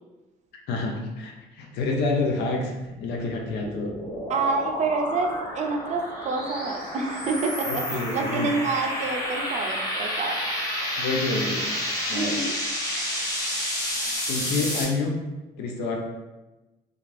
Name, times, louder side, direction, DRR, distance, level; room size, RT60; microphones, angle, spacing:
voice 1, 0.7-2.7 3.0-3.9 7.7-8.5 11.0-11.7 12.1-12.4 14.3-15.2 15.6-16.0, left 3 dB, 75° left, 1 dB, 0.5 m, -28 dB
sound 1, 2.9-14.8, equal, 20° left, 0.9 m, -30 dB
voice 2, 4.3-10.4 12.1-12.5, right 4 dB, 45° right, 3 dB, 0.5 m, -28 dB
2.4 x 2.3 x 3.1 m, 1.1 s
cardioid pair, 110°, 17 cm